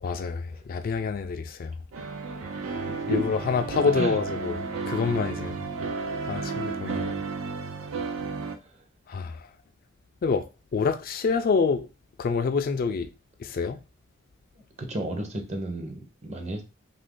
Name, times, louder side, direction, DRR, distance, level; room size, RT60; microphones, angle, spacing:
voice 1, 0.0-1.7 3.1-5.6 6.2-7.2 9.1-9.5 10.2-10.5 10.7-11.9 12.2-13.1 13.4-13.8, left 5 dB, 45° left, 0.3 m, -27 dB
sound 1, 1.9-8.6, right 4 dB, 85° right, 0.5 m, -32 dB
voice 2, 3.8-4.2 14.8-16.6, right 2 dB, 35° right, 0.7 m, -32 dB
2.7 x 2.5 x 3.7 m
head